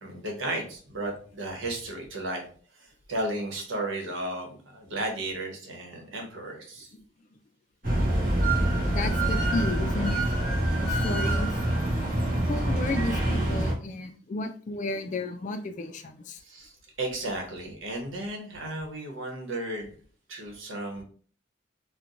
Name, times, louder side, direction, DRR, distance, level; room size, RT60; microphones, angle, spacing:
voice 1, 0.0-2.4 2.7-6.9 16.4-16.7 17.0-19.9 20.3-21.0, right 1 dB, 85° right, 1 dB, 1.1 m, -34 dB
sound 1, 7.8-13.7, right 1 dB, 45° right, 1.3 m, -25 dB
voice 2, 8.9-10.3 10.8-11.6 12.5-16.4, left 2 dB, 40° left, 8 dB, 0.3 m, -33 dB
4.4 x 2.2 x 2.5 m, 0.44 s
head